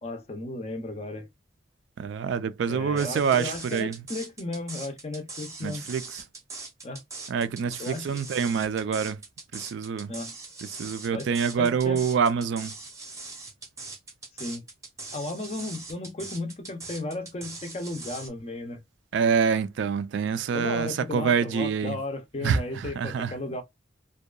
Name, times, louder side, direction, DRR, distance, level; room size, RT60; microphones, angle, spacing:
voice 1, 0.0-1.3 2.7-5.8 6.8-7.0 7.8-8.2 10.1-10.3 11.1-11.3 11.6-12.1 14.4-14.6 15.1-18.8 20.5-23.6, left 2 dB, 35° left, 0.5 m, -35 dB
voice 2, 2.0-3.9 5.6-6.0 7.3-7.8 8.1-9.2 9.5-10.1 10.8-12.7 19.1-22.0 22.4-22.6 23.0-23.3, right 6 dB, 70° right, 0.3 m, -26 dB
sound 1, 3.0-18.3, right 3 dB, 15° right, 0.6 m, -41 dB
2.7 x 2.2 x 2.2 m
head